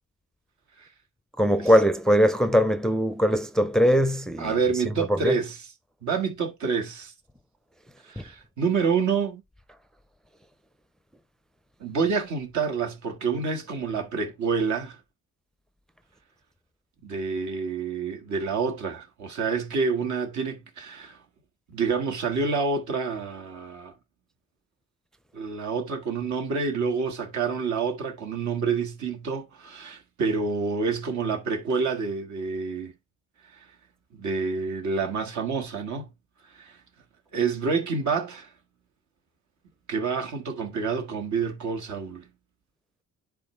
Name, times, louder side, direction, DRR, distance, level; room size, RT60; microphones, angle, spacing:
voice 1, 1.4-4.5 5.1-5.3, equal, ahead, 0.5 m, -21 dB
voice 2, 4.4-5.7 6.0-7.1 8.0-9.4 11.8-15.0 17.0-21.2 21.7-23.9 25.3-32.9 33.5-33.7 34.1-36.1 36.5-36.8 37.3-38.5 39.9-42.3, right 5 dB, 70° right, 1.7 m, -28 dB
10.0 x 3.8 x 3.2 m
cardioid pair, 90°, 30 cm